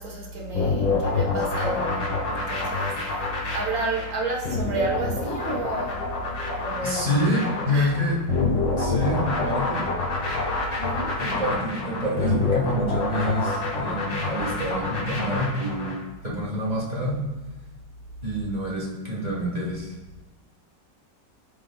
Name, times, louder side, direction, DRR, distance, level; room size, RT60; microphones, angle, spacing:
voice 1, 0.0-3.0 3.5-6.1 6.6-7.3 7.7-7.9 10.8-11.2, right 2 dB, 55° right, -1 dB, 1.6 m, -31 dB
sound 1, 0.5-16.0, left 3 dB, 90° left, 2.3 m, -27 dB
voice 2, 6.8-8.2 8.8-9.9 11.2-17.2 18.2-19.9, equal, 25° right, -4 dB, 1.5 m, -27 dB
11.5 x 4.7 x 2.3 m, 1.2 s
omnidirectional pair, 1.9 m